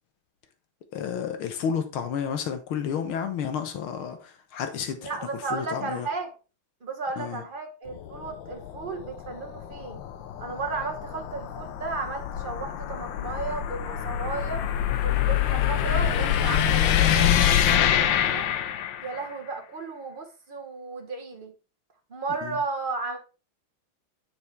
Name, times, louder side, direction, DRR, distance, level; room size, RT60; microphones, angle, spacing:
voice 1, 0.9-6.1 7.2-7.4 22.4-22.6, left 7 dB, 90° left, 2.0 m, -31 dB
voice 2, 5.0-6.3 6.8-10.0 10.4-14.6 15.0-18.5 19.0-21.5 22.1-23.2, right 3 dB, 30° right, 1.2 m, -34 dB
sound 1, 7.9-19.3, left 10 dB, 70° left, 1.4 m, -25 dB
7.3 x 6.1 x 3.3 m
omnidirectional pair, 2.2 m